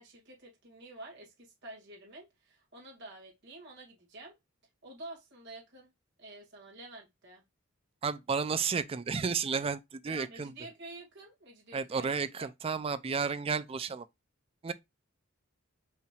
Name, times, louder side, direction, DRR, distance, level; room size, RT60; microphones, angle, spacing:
voice 1, 0.0-4.4 4.8-5.9 6.2-7.4 10.0-12.5, right 2 dB, 60° right, 2.2 m, -49 dB
voice 2, 8.0-10.5 11.7-14.1 14.6-14.7, right 5 dB, 30° right, 0.4 m, -32 dB
5.6 x 3.2 x 2.4 m
head